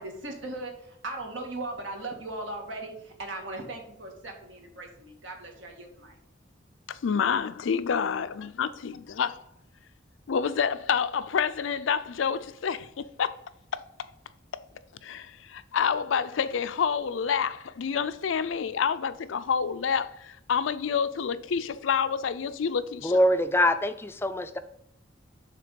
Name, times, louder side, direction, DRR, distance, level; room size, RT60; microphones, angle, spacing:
voice 1, 0.0-6.1, right 2 dB, 90° right, 1.7 m, -38 dB
voice 2, 6.9-9.3 10.3-13.4 14.5-14.6 15.0-23.2, left 6 dB, 85° left, 0.4 m, -28 dB
voice 3, 23.0-24.6, left 1 dB, 10° left, 0.3 m, -24 dB
6.7 x 3.5 x 5.1 m
head